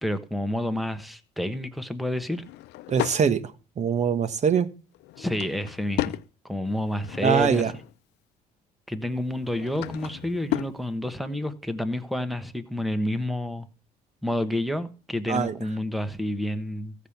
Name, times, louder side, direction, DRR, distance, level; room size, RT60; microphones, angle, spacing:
voice 1, 0.0-2.4 5.2-6.2 6.4-7.7 8.9-13.7 14.2-16.9, left 1 dB, ahead, 1.2 m, -29 dB
Drawer open or close / Wood, 2.3-3.2 4.9-6.3 6.8-8.0 9.3-10.8, left 16 dB, 80° left, 0.6 m, -34 dB
voice 2, 2.9-3.4 3.8-4.7 7.2-7.7 15.3-15.6, right 7 dB, 45° right, 1.3 m, -22 dB
15.0 x 5.1 x 7.2 m
cardioid pair, 110°, 17 cm